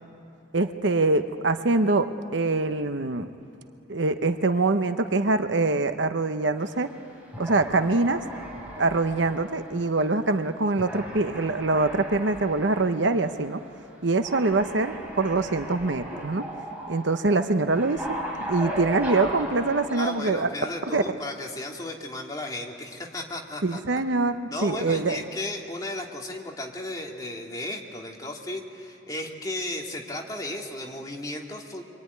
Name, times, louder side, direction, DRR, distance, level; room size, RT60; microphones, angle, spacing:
voice 1, 0.5-3.3 3.9-6.9 7.4-8.2 8.8-13.6 14.0-16.5 16.9-18.1 18.5-20.5 20.9-21.0 23.6-25.2, right 3 dB, 75° right, 9 dB, 0.9 m, -24 dB
sound 1, 6.6-6.9 7.3-10.4 10.8-13.0 13.3-13.4 14.2-20.2, equal, 10° right, 5.3 m, -37 dB
voice 2, 19.9-23.8 24.5-31.8, left 1 dB, 20° left, 0 dB, 2.3 m, -35 dB
25.0 x 24.5 x 9.6 m, 2.9 s
head